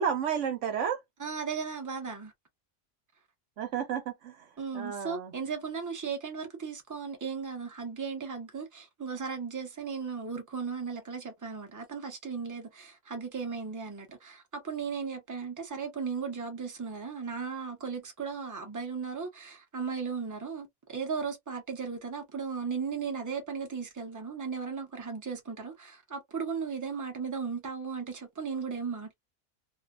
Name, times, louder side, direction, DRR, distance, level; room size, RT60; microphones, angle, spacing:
voice 1, 0.0-1.0 3.6-5.3, right 8 dB, 75° right, 1.0 m, -32 dB
voice 2, 1.2-2.3 4.6-29.1, right 5 dB, 20° right, 0.7 m, -36 dB
2.6 x 2.1 x 2.3 m
omnidirectional pair, 1.3 m